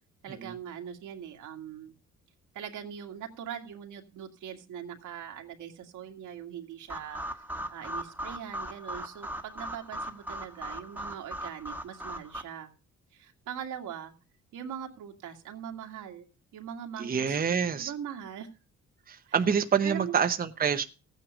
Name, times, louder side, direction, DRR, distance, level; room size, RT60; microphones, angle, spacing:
voice 1, 0.2-1.9 2.5-7.4 7.7-12.7 13.1-14.1 14.5-16.3 16.5-18.5 19.3-19.4 19.8-20.2, right 9 dB, 80° right, 2.1 m, -41 dB
sound 1, 6.9-12.4, equal, 5° right, 1.3 m, -39 dB
voice 2, 17.0-17.9 19.1-20.8, right 7 dB, 30° right, 0.9 m, -27 dB
14.0 x 9.2 x 5.0 m
cardioid pair, 90°, 30 cm